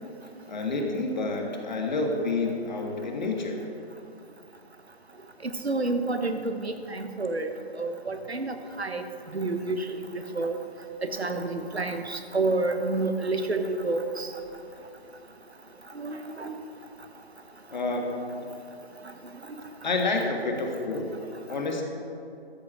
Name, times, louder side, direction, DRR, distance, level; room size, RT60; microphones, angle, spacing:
voice 1, 0.5-3.6 17.7-18.3 19.8-21.0 21.5-21.8, left 3 dB, 45° left, 2 dB, 1.6 m, -29 dB
voice 2, 5.4-7.5 7.8-9.0 9.3-10.1 10.3-10.6 11.0-14.3 15.9-16.5, right 3 dB, 80° right, 7 dB, 1.2 m, -29 dB
13.0 x 6.2 x 6.2 m, 2.7 s
figure-of-eight pair, 145°, 32 cm